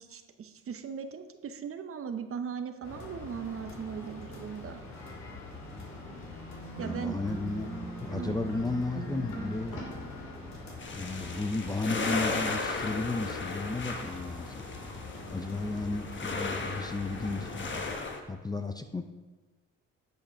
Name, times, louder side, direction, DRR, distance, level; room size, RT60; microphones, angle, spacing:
voice 1, 0.0-4.8 6.8-7.2 8.2-8.6, right 7 dB, 45° right, 8 dB, 0.8 m, -38 dB
sound 1, 2.8-17.9, left 2 dB, 65° left, 2.7 m, -44 dB
sound 2, 6.7-10.7, right 2 dB, 85° left, 2.4 m, -40 dB
voice 2, 6.8-7.7 8.0-9.9 10.9-14.6 15.3-17.5 18.3-19.0, left 3 dB, 15° left, 7 dB, 0.5 m, -34 dB
sound 3, 10.8-18.2, left 3 dB, 40° left, 1.2 m, -36 dB
9.2 x 5.7 x 5.6 m, 1.3 s
cardioid pair, 90°, 30 cm